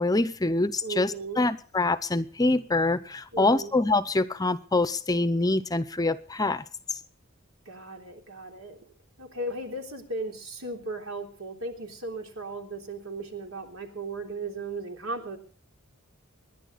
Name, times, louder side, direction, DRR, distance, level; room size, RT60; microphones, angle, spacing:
voice 1, 0.0-6.6 6.9-7.0, left 2 dB, 20° left, 0.7 m, -25 dB
voice 2, 0.8-1.5 3.3-3.7 7.7-8.8 9.2-15.4, right 2 dB, 85° right, 3.6 m, -36 dB
26.5 x 11.0 x 4.1 m
head